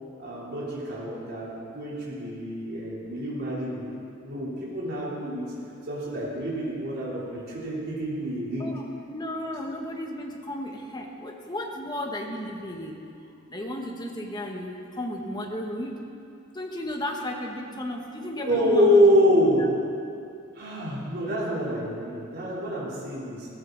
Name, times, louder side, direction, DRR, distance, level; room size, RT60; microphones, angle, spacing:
voice 1, 0.2-5.5 5.9-8.7 18.3-19.7 20.6-23.5, equal, 50° right, -7 dB, 3.7 m, -26 dB
voice 2, 8.6-13.0 13.5-16.0 16.5-19.5, left 1 dB, 20° left, 1 dB, 1.5 m, -34 dB
17.5 x 14.5 x 4.1 m, 2.5 s
head